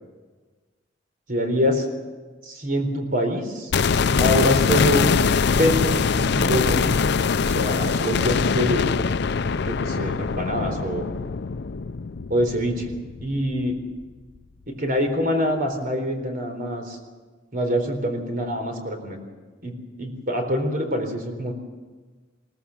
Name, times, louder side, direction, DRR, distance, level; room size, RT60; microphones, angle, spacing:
voice 1, 1.3-1.9 2.4-3.7 4.2-5.1 5.5-7.0 7.4-8.9 9.5-11.1 12.3-12.9 13.2-13.8 14.7-17.0 17.5-19.2 19.6-21.5, equal, 50° right, 5 dB, 4.0 m, -25 dB
sound 1, 3.7-13.7 14.0-14.1, left 5 dB, 65° left, 0.5 m, -23 dB
22.0 x 18.0 x 7.2 m, 1.4 s
head